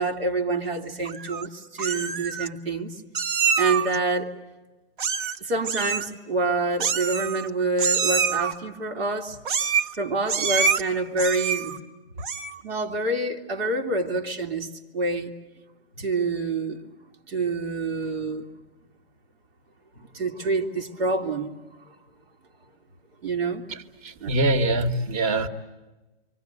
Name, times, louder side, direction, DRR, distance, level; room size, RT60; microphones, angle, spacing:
voice 1, 0.0-2.9 3.6-4.4 5.4-9.4 10.0-11.8 12.6-14.7 14.9-15.3 16.0-16.9 17.3-18.5 20.0-21.5 23.2-23.6 24.2-24.3, right 3 dB, 85° right, 2.7 m, -27 dB
Meow, 1.1-1.5 1.8-2.5 3.2-4.0 5.0-5.4 5.6-6.1 6.8-7.5 7.8-8.5 9.5-10.0 10.3-10.8 11.2-11.8 12.2-12.6, right 6 dB, 55° right, 1.3 m, -26 dB
voice 2, 23.7-25.5, right 2 dB, 40° right, 1.8 m, -24 dB
28.5 x 25.0 x 8.1 m
hypercardioid pair, 155°, 30 cm